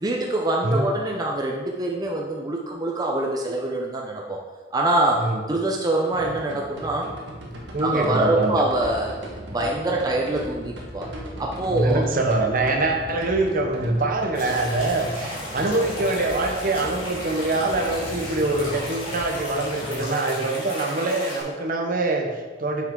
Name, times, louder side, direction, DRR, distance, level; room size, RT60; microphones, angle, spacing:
voice 1, 0.0-4.4 4.7-7.1 7.8-9.2 9.5-11.1 11.4-12.0, right 2 dB, 20° right, -1 dB, 0.6 m, -24 dB
sound 1, 6.1-20.0, right 1 dB, 85° right, 1.4 m, -39 dB
sound 2, 7.4-18.8, equal, 15° left, 1.5 m, -44 dB
voice 2, 7.7-8.6 11.7-22.9, right 2 dB, 50° right, 3 dB, 0.9 m, -24 dB
sound 3, 14.3-21.4, left 1 dB, 30° left, 2.5 m, -35 dB
7.6 x 5.8 x 3.8 m, 1.4 s
head